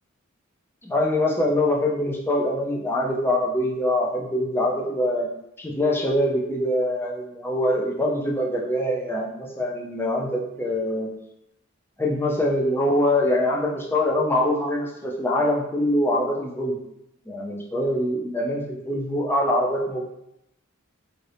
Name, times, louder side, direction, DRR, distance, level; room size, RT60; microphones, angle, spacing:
voice 1, 0.8-5.3 5.6-11.1 12.0-16.8 17.3-20.0, left 1 dB, 10° left, -2 dB, 0.4 m, -24 dB
2.7 x 2.7 x 3.2 m, 0.81 s
head